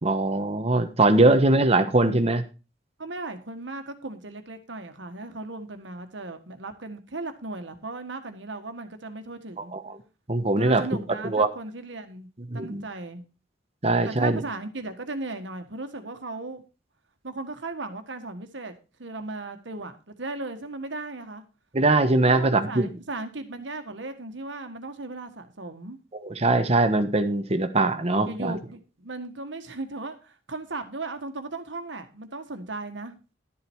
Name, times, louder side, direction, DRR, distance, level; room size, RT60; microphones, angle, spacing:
voice 1, 0.0-2.4 9.7-9.9 10.3-10.8 11.2-11.5 12.5-12.8 13.8-14.4 21.7-22.9 26.2-28.6, right 2 dB, 35° right, 9 dB, 1.1 m, -21 dB
voice 2, 3.0-9.7 10.6-12.3 12.5-13.2 14.0-16.6 17.2-21.4 22.3-26.0 28.3-33.1, right 2 dB, 85° right, 8 dB, 1.5 m, -36 dB
12.0 x 7.6 x 4.5 m, 0.32 s
head